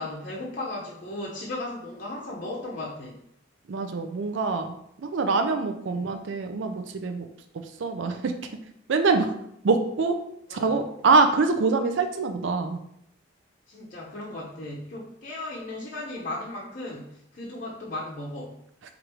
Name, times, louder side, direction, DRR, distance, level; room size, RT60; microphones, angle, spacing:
voice 1, 0.0-3.2 5.9-6.0 10.5-10.8 13.7-18.6, left 2 dB, 45° left, -4 dB, 0.6 m, -36 dB
voice 2, 3.7-4.7 5.0-7.3 7.6-8.3 8.9-9.3 9.6-10.1 10.5-12.8, right 4 dB, 65° right, 6 dB, 0.4 m, -24 dB
4.7 x 2.5 x 3.0 m, 0.72 s
head